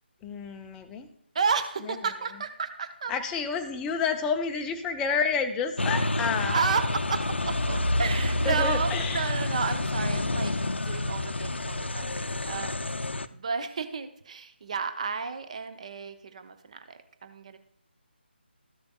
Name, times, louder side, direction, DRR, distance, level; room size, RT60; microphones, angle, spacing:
voice 1, 0.2-1.1 3.1-6.6 8.5-9.2, left 5 dB, 10° left, 6 dB, 0.5 m, -29 dB
voice 2, 1.3-3.2 6.4-17.6, right 5 dB, 35° right, 9 dB, 0.7 m, -32 dB
sound 1, 5.8-13.3, left 2 dB, 75° left, 0.5 m, -28 dB
13.5 x 6.8 x 2.3 m, 0.71 s
figure-of-eight pair, 150°, 6 cm